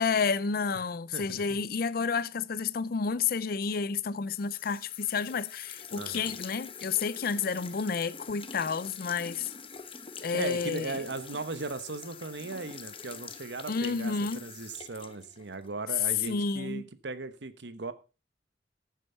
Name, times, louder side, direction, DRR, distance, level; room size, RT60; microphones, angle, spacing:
voice 1, 0.0-9.5 10.2-10.9 13.7-14.4 16.3-16.8, left 5 dB, 55° left, 0.5 m, -30 dB
voice 2, 1.1-1.6 6.0-6.3 10.3-17.9, right 3 dB, 75° right, 1.0 m, -38 dB
sound 1, 4.3-15.7, left 6 dB, 30° left, 0.9 m, -45 dB
14.0 x 7.5 x 4.4 m
head